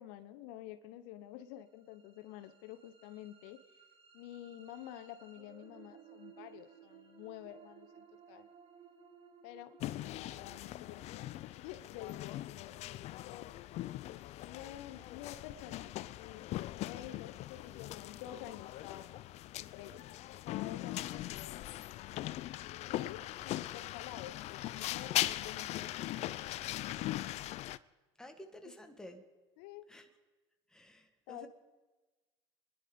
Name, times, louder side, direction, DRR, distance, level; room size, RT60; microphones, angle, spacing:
voice 1, 0.0-3.6 4.1-8.5 9.4-11.3 11.6-12.8 13.2-13.6 14.4-16.6 16.8-19.2 19.6-20.1 20.5-22.5 22.9-27.3 29.6-29.9 31.3-31.5, left 12 dB, 75° left, 10 dB, 0.9 m, -50 dB
sound 1, 1.5-13.6, right 7 dB, 40° right, 2.0 m, -60 dB
sound 2, 9.8-27.8, left 15 dB, 50° left, 0.5 m, -40 dB
voice 2, 28.2-29.2 29.9-30.1 30.7-31.5, left 1 dB, 5° left, 5 dB, 1.7 m, -52 dB
25.5 x 10.5 x 5.2 m, 1.2 s
supercardioid pair, 100°, 14 cm